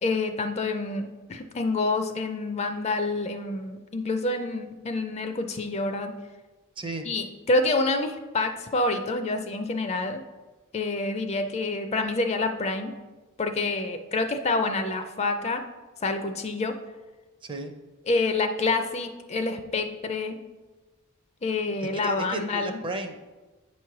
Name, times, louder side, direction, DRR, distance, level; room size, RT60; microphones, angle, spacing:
voice 1, 0.0-6.1 7.1-10.2 10.7-12.9 13.4-15.6 16.0-16.7 18.1-20.4 21.4-22.8, left 3 dB, 30° left, 7 dB, 0.4 m, -27 dB
voice 2, 17.4-17.7 21.8-23.3, right 2 dB, 25° right, 6 dB, 0.5 m, -34 dB
8.6 x 3.1 x 5.8 m, 1.2 s
head